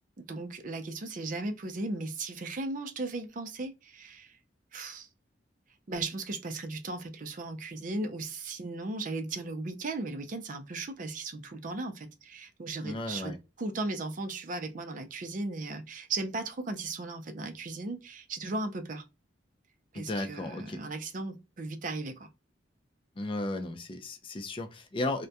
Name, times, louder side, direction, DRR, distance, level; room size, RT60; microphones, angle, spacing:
voice 1, 0.2-4.4 4.7-5.1 5.9-19.0 19.9-22.3, right 2 dB, 45° right, 0.5 m, -36 dB
voice 2, 12.8-13.4 19.9-20.8 23.2-25.3, left 2 dB, 30° left, 0.4 m, -34 dB
2.2 x 2.1 x 2.6 m
head